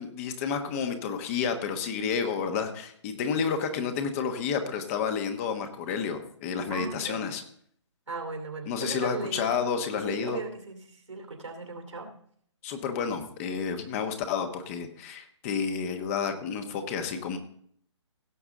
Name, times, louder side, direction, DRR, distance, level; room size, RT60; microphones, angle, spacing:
voice 1, 0.0-7.4 8.7-10.4 12.6-17.4, left 6 dB, 30° left, 7 dB, 1.2 m, -30 dB
voice 2, 6.7-7.3 8.1-9.5 10.1-12.1, right 3 dB, 85° right, 4 dB, 2.8 m, -37 dB
16.5 x 7.1 x 3.8 m, 0.64 s
figure-of-eight pair, 140°, 15 cm